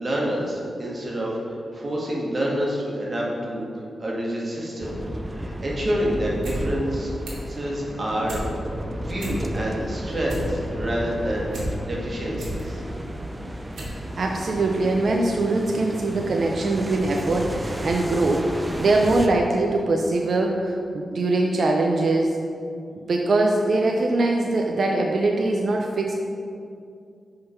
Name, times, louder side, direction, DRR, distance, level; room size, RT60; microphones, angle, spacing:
voice 1, 0.0-3.6 4.0-4.9 5.3-7.1 7.5-8.4 8.9-11.5 11.8-12.8, equal, 40° right, -3 dB, 1.6 m, -27 dB
sound 1, 4.8-19.3, right 1 dB, 15° right, 0.5 m, -33 dB
sound 2, 6.2-6.6 6.9-7.5 7.9-8.5 8.8-8.9 9.1-9.7 10.0-11.7 12.1-12.6 13.2-13.3 13.7-14.0 14.3-14.4, equal, 85° right, 1.6 m, -34 dB
voice 2, 14.2-18.5 18.8-22.4 23.1-26.2, right 2 dB, 60° right, 1 dB, 0.5 m, -22 dB
5.4 x 3.8 x 5.7 m, 2.4 s
cardioid pair, 65°, 0 cm